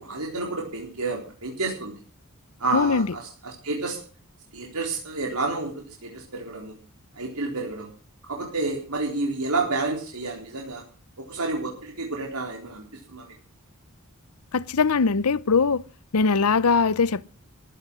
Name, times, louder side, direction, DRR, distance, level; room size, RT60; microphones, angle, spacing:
voice 1, 0.0-2.0 2.6-4.0 4.5-6.8 7.2-7.9 8.3-10.8 11.2-13.3, right 3 dB, 90° right, 4.1 m, -30 dB
voice 2, 2.7-3.1 14.5-15.8 16.1-17.3, left 4 dB, 75° left, 0.7 m, -21 dB
15.0 x 12.5 x 6.2 m
head